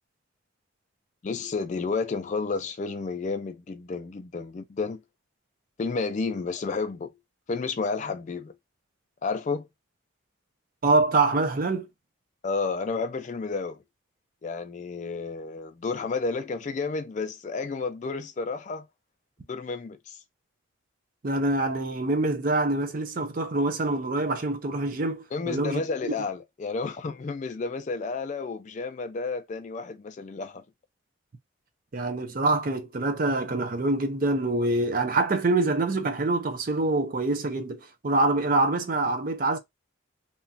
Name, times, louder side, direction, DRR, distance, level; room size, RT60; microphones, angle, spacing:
voice 1, 1.2-5.0 5.8-7.2 7.5-8.5 9.2-9.7 12.4-13.8 14.4-18.9 19.5-20.2 25.3-30.6, left 4 dB, 35° left, 0.3 m, -31 dB
voice 2, 10.8-11.9 21.2-25.8 31.9-39.6, right 2 dB, 45° right, 0.5 m, -25 dB
2.9 x 2.3 x 2.6 m
head